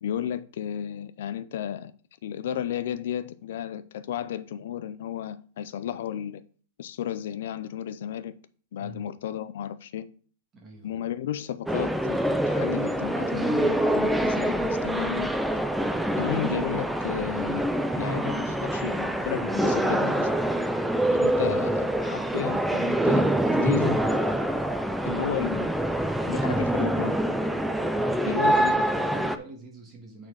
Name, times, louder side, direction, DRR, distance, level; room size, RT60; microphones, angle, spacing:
voice 1, 0.0-1.9 2.2-6.4 6.8-8.3 8.7-10.1 10.8-12.2 12.5-15.3 16.2-17.6 17.9-20.3 21.1-23.3 23.5-24.0 25.0-25.7 26.3-27.2 28.2-28.7, left 10 dB, 65° left, 0.5 m, -33 dB
voice 2, 8.8-9.1 10.6-10.9 28.0-30.3, right 1 dB, 20° right, 1.8 m, -44 dB
sound 1, 11.7-29.4, right 1 dB, ahead, 0.4 m, -25 dB
8.6 x 4.3 x 4.8 m
supercardioid pair, 170°, 0 cm